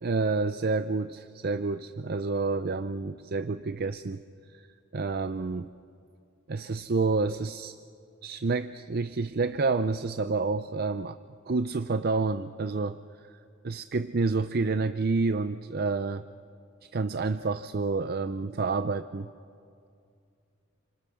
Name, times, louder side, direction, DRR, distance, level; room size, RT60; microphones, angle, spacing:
voice 1, 0.0-4.2 4.5-4.7 4.9-5.7 6.5-7.8 8.2-11.2 11.5-13.3 13.6-16.2 16.9-19.3, right 3 dB, 50° right, 11 dB, 0.5 m, -29 dB
29.0 x 25.5 x 6.4 m, 2.4 s
head